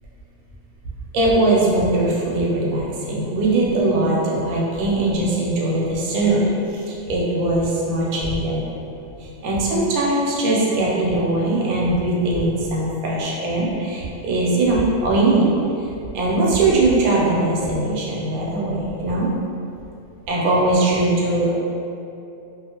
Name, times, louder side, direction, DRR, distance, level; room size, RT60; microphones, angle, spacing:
voice 1, 1.1-8.7 9.2-15.5 16.1-19.3 20.3-21.5, right 2 dB, 90° right, -4 dB, 1.1 m, -20 dB
2.4 x 2.4 x 2.8 m, 2.7 s
omnidirectional pair, 1.5 m